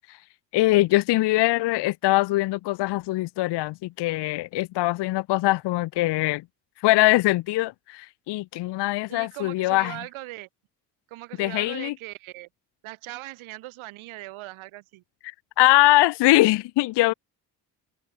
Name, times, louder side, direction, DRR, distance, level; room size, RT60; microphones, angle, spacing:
voice 1, 0.5-6.4 6.8-10.0 11.4-11.9 15.2-17.1, left 19 dB, 60° left, 0.6 m, -22 dB
voice 2, 9.1-10.5 11.1-12.5 12.8-15.0, right 18 dB, 80° right, 3.8 m, -40 dB
supercardioid pair, 60°, 48 cm